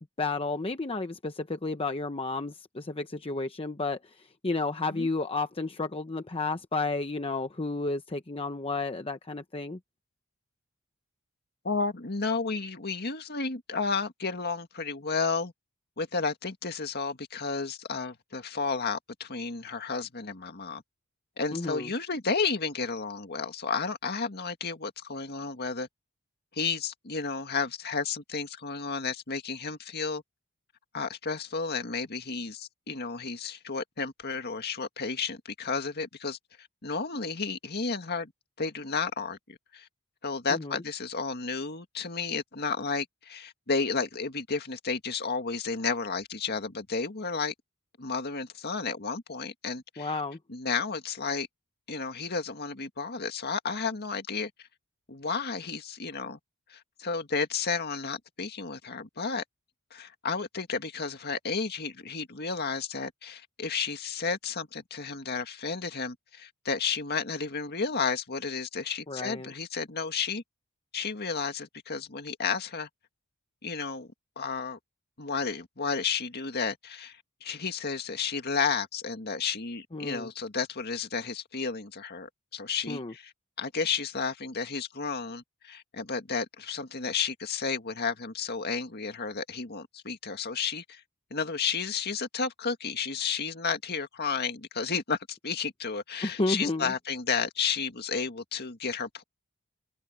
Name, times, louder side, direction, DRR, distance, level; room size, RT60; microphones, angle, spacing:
voice 1, 0.2-9.8 21.5-21.9 40.5-40.8 50.0-50.4 69.1-69.5 79.9-80.3 82.9-83.1 96.2-96.9, left 3 dB, 25° left, 0.9 m, -32 dB
voice 2, 11.6-15.5 16.0-20.8 21.4-25.9 26.5-30.2 30.9-38.3 38.6-39.9 40.2-47.5 48.0-50.2 50.5-51.5 51.9-54.5 55.1-56.4 56.7-59.4 59.9-70.4 70.9-72.9 73.6-74.8 75.2-83.3 83.6-91.0 91.3-99.2, left 5 dB, 50° left, 2.0 m, -32 dB
head